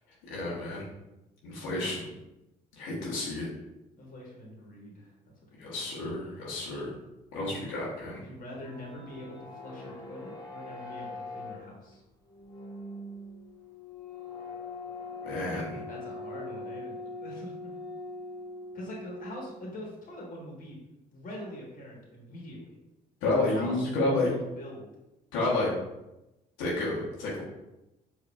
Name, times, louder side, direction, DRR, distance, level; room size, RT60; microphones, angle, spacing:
voice 1, 0.3-0.8 1.4-2.1 2.7-3.5 5.6-6.9 7.3-8.2 15.2-15.8 23.2-24.3 25.3-25.7 26.6-27.4, left 2 dB, 85° left, -7 dB, 1.0 m, -30 dB
voice 2, 4.0-5.1 5.6-5.7 7.5-7.7 8.1-12.0 15.9-17.7 18.7-20.8 21.1-22.8 23.4-24.9, left 1 dB, 45° left, -2 dB, 1.4 m, -44 dB
sound 1, 8.4-19.6, left 2 dB, 25° left, 1.2 m, -42 dB
4.9 x 2.7 x 2.4 m, 0.94 s
supercardioid pair, 60°, 19 cm